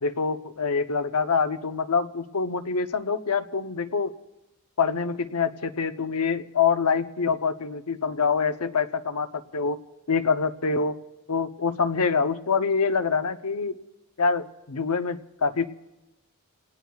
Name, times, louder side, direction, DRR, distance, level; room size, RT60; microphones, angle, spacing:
voice 1, 0.0-4.1 4.8-9.8 10.1-10.9 11.3-13.8 14.2-15.7, left 5 dB, 80° left, 9 dB, 0.8 m, -25 dB
29.5 x 18.5 x 2.4 m, 0.98 s
head